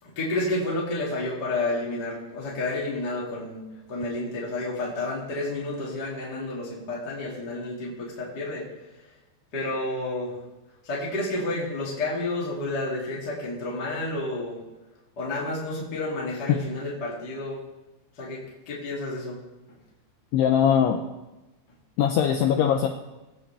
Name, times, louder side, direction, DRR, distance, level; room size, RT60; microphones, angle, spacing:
voice 1, 0.0-3.6 3.9-8.6 9.5-10.3 10.8-14.6 15.2-17.6 18.2-18.4 18.7-19.4, left 2 dB, 30° left, -6 dB, 2.2 m, -30 dB
voice 2, 20.3-21.0 22.0-22.9, left 9 dB, 85° left, 3 dB, 2.4 m, -21 dB
20.5 x 8.8 x 3.4 m, 1.0 s
omnidirectional pair, 5.5 m